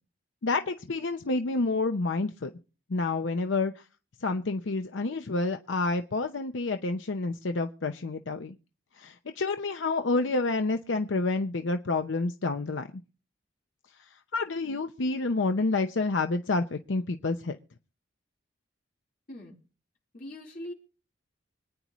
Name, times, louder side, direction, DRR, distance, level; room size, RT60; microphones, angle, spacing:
voice 1, 0.4-2.5 2.9-3.7 4.2-8.5 9.0-12.9 14.3-17.6, left 3 dB, 80° left, 7 dB, 0.7 m, -29 dB
voice 2, 20.1-20.7, left 1 dB, 50° left, -2 dB, 3.9 m, -41 dB
25.5 x 9.6 x 3.0 m, 0.36 s
head